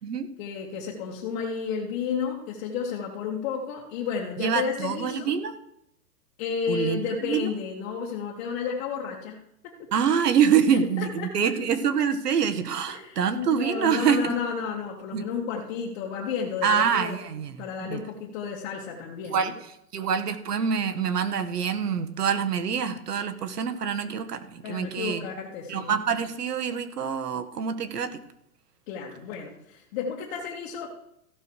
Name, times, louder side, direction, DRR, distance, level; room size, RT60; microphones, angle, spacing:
voice 1, 0.4-5.3 6.4-9.9 10.7-11.5 12.9-17.2 17.6-19.5 24.6-25.9 28.9-30.9, left 6 dB, 40° left, -3 dB, 2.2 m, -32 dB
voice 2, 4.4-5.5 6.7-7.5 9.9-14.3 15.1-15.2 16.6-17.5 17.8-18.0 19.3-19.5 19.9-25.2 25.7-28.2, right 7 dB, 75° right, 7 dB, 1.7 m, -25 dB
15.5 x 12.0 x 3.3 m, 0.77 s
hypercardioid pair, 135°, 47 cm